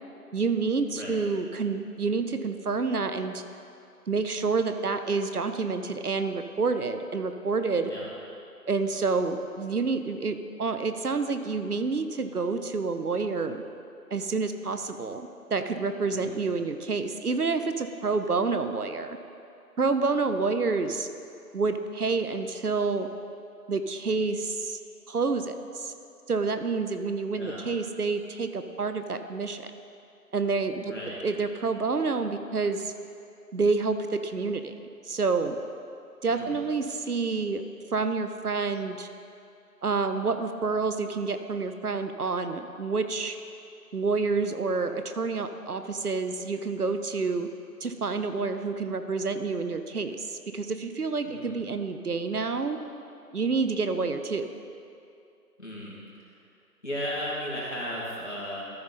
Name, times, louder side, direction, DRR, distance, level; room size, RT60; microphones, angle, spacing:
voice 1, 0.3-3.4 4.1-7.9 8.7-13.6 14.1-19.2 19.8-21.1 21.5-23.1 23.7-24.8 25.1-25.9 26.3-29.6 30.3-30.9 31.2-32.9 33.5-34.7 35.1-35.6 36.2-37.6 37.9-39.1 39.8-43.4 43.9-47.5 47.8-52.8 53.3-54.5, right 4 dB, 70° right, 8 dB, 0.7 m, -28 dB
voice 2, 16.0-16.4 27.3-27.7 30.9-31.2 36.3-36.6 51.3-51.6 55.6-56.4 56.8-58.6, equal, 45° left, -6 dB, 2.1 m, -36 dB
13.5 x 5.2 x 4.1 m, 2.6 s
figure-of-eight pair, 180°, 48 cm